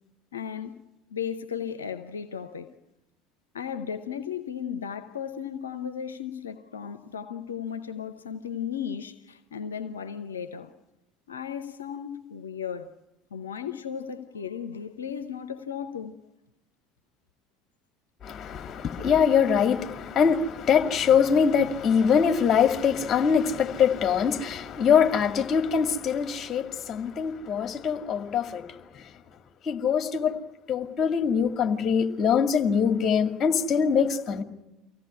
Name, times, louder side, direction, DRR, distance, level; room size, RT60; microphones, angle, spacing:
voice 1, 0.3-0.8 1.1-2.7 3.5-10.7 11.3-12.9 13.3-16.2, left 8 dB, 85° left, 0.8 m, -35 dB
voice 2, 18.2-29.0 29.6-30.4 30.7-34.4, left 7 dB, 40° left, 2.2 m, -23 dB
25.0 x 17.0 x 9.6 m
hypercardioid pair, 65°, 0 cm